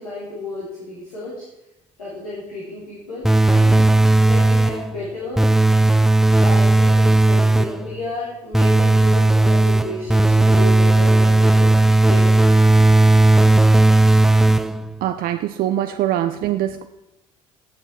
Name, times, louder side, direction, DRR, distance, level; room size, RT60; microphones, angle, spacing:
voice 1, 0.0-1.5 2.0-3.8 4.2-5.5 6.3-11.7 12.0-12.5, left 2 dB, 85° left, -8 dB, 3.4 m, -32 dB
sound 1, 3.2-4.9 5.4-7.9 8.5-14.9, right 2 dB, ahead, 0.5 m, -15 dB
voice 2, 15.0-16.9, right 12 dB, 55° right, 9 dB, 0.7 m, -23 dB
18.0 x 7.9 x 4.5 m, 0.94 s
figure-of-eight pair, 60°, 19 cm